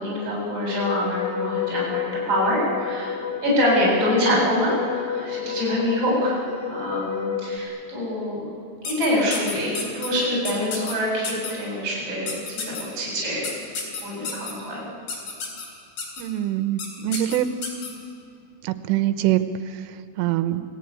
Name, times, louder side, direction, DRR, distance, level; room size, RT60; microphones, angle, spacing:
voice 1, 0.0-3.1 3.4-6.4 6.6-8.5 8.8-13.6 14.0-14.9, left 1 dB, 20° right, -4 dB, 8.4 m, -25 dB
sound 1, 0.7-7.6, left 8 dB, 75° left, 2.0 m, -30 dB
sound 2, 8.9-10.1 10.5-10.9 11.2-11.5 12.3-12.8 13.4-14.5 15.1-15.7 16.0-16.2 16.8-16.9 17.1-17.9, left 5 dB, 55° left, 5.3 m, -31 dB
voice 2, 16.2-17.5 18.6-20.6, right 13 dB, 80° right, 10 dB, 3.3 m, -24 dB
29.5 x 18.0 x 9.6 m, 2.5 s
omnidirectional pair, 5.9 m